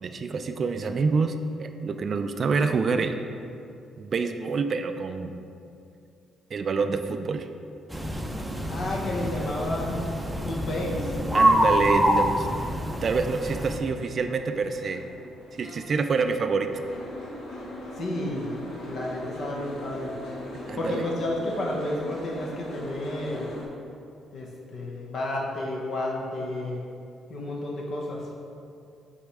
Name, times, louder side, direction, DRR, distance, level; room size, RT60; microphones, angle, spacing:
voice 1, 0.0-3.2 4.0-5.5 6.5-7.5 11.3-12.7 13.0-15.0 15.5-16.7 20.7-21.0, right 4 dB, 50° right, 7 dB, 0.3 m, -27 dB
sound 1, 7.9-13.8, equal, 5° right, 0.6 m, -26 dB
voice 2, 8.7-10.1 10.4-11.5 17.9-18.6 18.8-20.1 20.8-23.5 24.3-26.8 27.3-28.3, left 1 dB, 60° left, -3 dB, 1.0 m, -31 dB
Boat Water vehicle, 13.9-23.7, left 1 dB, 85° left, 1.3 m, -40 dB
5.2 x 4.2 x 4.7 m, 2.5 s
cardioid pair, 90°, 0 cm